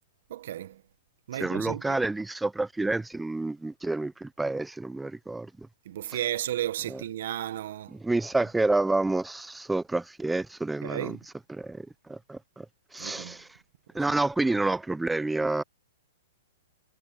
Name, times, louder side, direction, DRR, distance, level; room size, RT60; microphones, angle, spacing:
voice 1, 0.3-0.8 1.3-2.0 5.8-7.9 10.8-11.2 13.0-13.4, right 12 dB, 65° right, 1.6 m, -33 dB
voice 2, 1.4-5.5 6.9-7.0 7.9-11.2 11.5-11.8 12.1-12.6 12.9-13.5 13.9-15.6, right 2 dB, 5° right, 0.8 m, -29 dB
hypercardioid pair, 130°, 0 cm